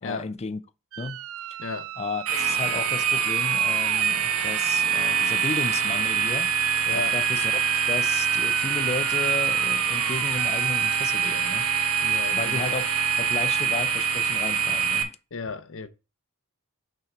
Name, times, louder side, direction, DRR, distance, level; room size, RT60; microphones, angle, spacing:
voice 1, 0.0-0.6 1.0-1.2 1.5-1.6 2.0-6.5 6.9-11.7 12.3-15.1, left 4 dB, 30° left, 0.4 m, -33 dB
sound 1, 0.9-13.7, right 11 dB, 65° right, 0.4 m, -35 dB
voice 2, 1.6-1.9 6.8-7.2 12.0-12.8 15.3-15.9, left 4 dB, 65° left, 0.7 m, -34 dB
sound 2, 2.3-15.0, right 7 dB, 85° right, 1.1 m, -24 dB
5.7 x 3.9 x 6.0 m
head